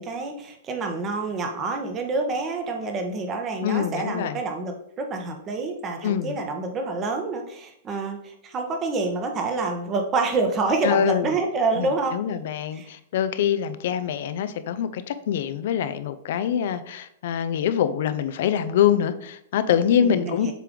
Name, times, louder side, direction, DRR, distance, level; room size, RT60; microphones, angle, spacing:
voice 1, 0.0-12.4 12.7-12.9 20.0-20.5, right 3 dB, 25° right, 4 dB, 1.2 m, -27 dB
voice 2, 3.6-4.4 6.0-6.4 10.8-11.3 11.8-20.5, left 9 dB, 65° left, 12 dB, 0.5 m, -24 dB
7.4 x 3.4 x 3.8 m, 0.74 s
hypercardioid pair, 135°, 0 cm